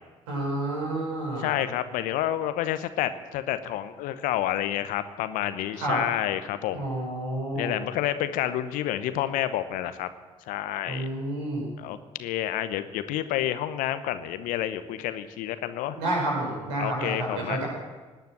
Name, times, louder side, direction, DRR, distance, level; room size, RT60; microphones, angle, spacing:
voice 1, 0.3-1.5 5.7-6.0 6.7-7.8 10.9-11.7 15.9-17.7, right 1 dB, 70° right, -2 dB, 5.7 m, -30 dB
voice 2, 1.4-6.8 7.5-10.1 10.5-11.1 11.8-16.0 16.8-17.6, left 12 dB, 60° left, 12 dB, 1.0 m, -29 dB
18.5 x 9.4 x 7.8 m, 1.3 s
figure-of-eight pair, 50°, 15 cm